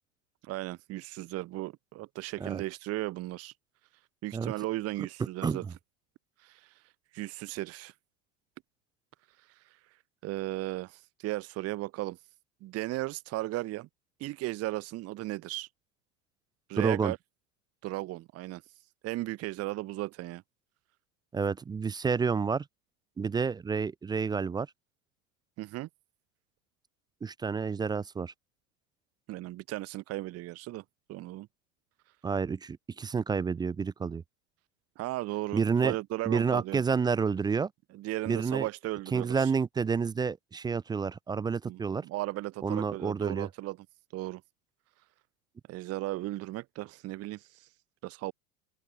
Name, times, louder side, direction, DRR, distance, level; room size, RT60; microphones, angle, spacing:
voice 1, 0.4-3.5 4.2-5.6 6.4-6.7 7.1-7.9 10.2-12.2 12.6-13.9 14.2-15.7 16.7-17.2 17.8-18.6 19.0-20.4 25.6-25.9 29.3-30.8 31.1-31.5 35.0-36.8 37.9-39.5 41.6-43.8 44.1-44.4 45.7-47.7 48.0-48.3, right 17 dB, 35° right, 0.8 m, -36 dB
voice 2, 16.8-17.1 21.3-22.6 23.2-24.7 27.2-28.3 32.2-34.2 35.5-36.0 36.3-37.7 38.3-38.7 39.1-42.0 42.6-43.5, right 5 dB, 10° right, 0.4 m, -29 dB
open air
supercardioid pair, 110°, 42 cm